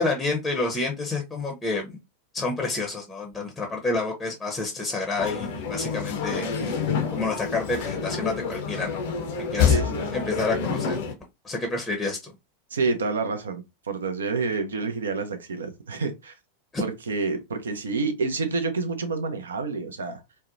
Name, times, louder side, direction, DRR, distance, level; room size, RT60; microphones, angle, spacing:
voice 1, 0.0-2.0 2.3-9.0 9.5-9.8 10.1-11.0 11.4-12.3 16.7-16.8, left 3 dB, 10° left, 0.6 m, -29 dB
sound 1, 5.2-11.1, left 6 dB, 55° left, 0.5 m, -27 dB
voice 2, 9.6-10.0 12.7-16.3 16.8-20.2, right 4 dB, 70° right, 0.5 m, -28 dB
2.7 x 2.1 x 2.4 m
figure-of-eight pair, 90°, 0 cm